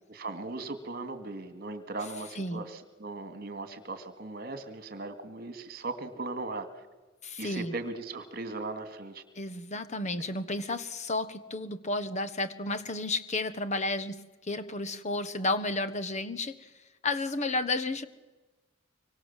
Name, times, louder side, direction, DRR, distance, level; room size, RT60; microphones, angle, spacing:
voice 1, 0.1-6.9 7.4-9.2, right 3 dB, 50° right, 9 dB, 2.3 m, -38 dB
voice 2, 7.2-7.7 9.4-14.2 14.4-16.7 17.0-18.1, left 2 dB, 35° left, 13 dB, 1.2 m, -32 dB
25.0 x 24.5 x 7.4 m, 1.2 s
head